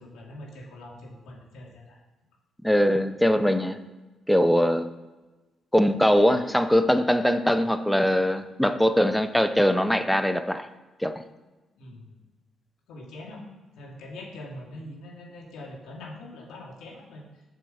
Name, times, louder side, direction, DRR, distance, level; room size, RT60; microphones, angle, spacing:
voice 1, 0.0-2.0 11.8-12.2 12.9-13.4 13.7-17.4, left 1 dB, 85° left, -2 dB, 2.6 m, -43 dB
voice 2, 2.6-3.8 4.3-4.9 5.7-10.7 11.0-11.2, equal, ahead, 10 dB, 0.7 m, -22 dB
7.7 x 6.1 x 7.2 m, 1.2 s
cardioid pair, 95°, 0 cm